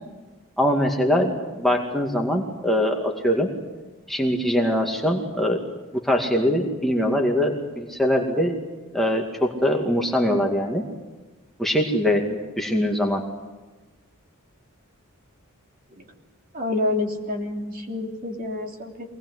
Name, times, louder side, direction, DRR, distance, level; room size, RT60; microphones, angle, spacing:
voice 1, 0.6-3.5 4.1-5.6 6.0-8.6 8.9-10.8 11.6-13.2, equal, ahead, 0 dB, 2.3 m, -22 dB
voice 2, 16.5-19.2, left 2 dB, 40° right, 2 dB, 3.5 m, -28 dB
24.5 x 19.5 x 9.7 m, 1.2 s
head